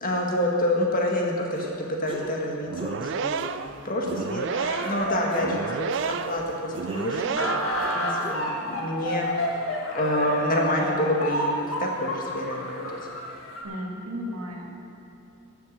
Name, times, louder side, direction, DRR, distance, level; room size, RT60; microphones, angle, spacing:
voice 1, 0.0-1.7 2.0-3.5 3.8-6.6 6.9-7.6 7.9-9.5 9.9-12.9, left 1 dB, 40° left, -1 dB, 1.7 m, -27 dB
sound 1, 1.5-1.7 2.1-2.4 2.8-3.0 3.4-3.7 4.1-4.4 4.8-5.0 5.3-6.4 6.7-7.4 7.8-8.8, right 1 dB, 25° right, 0.9 m, -40 dB
sound 2, 2.6-7.9, right 6 dB, 55° right, 0.3 m, -31 dB
sound 3, 4.5-13.6, left 1 dB, 70° left, 1.9 m, -31 dB
voice 2, 13.6-14.7, equal, 85° right, 0 dB, 1.8 m, -34 dB
12.5 x 7.3 x 7.7 m, 2.7 s
head